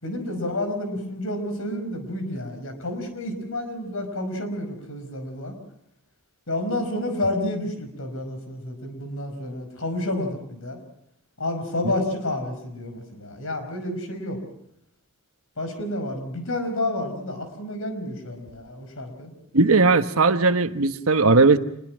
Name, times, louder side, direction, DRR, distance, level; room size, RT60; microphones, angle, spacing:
voice 1, 0.0-5.5 6.5-10.8 11.4-14.4 15.6-19.3, left 1 dB, 70° left, 8 dB, 5.4 m, -30 dB
voice 2, 19.5-21.6, right 3 dB, 80° right, 9 dB, 1.3 m, -18 dB
26.5 x 22.0 x 6.3 m, 0.79 s
head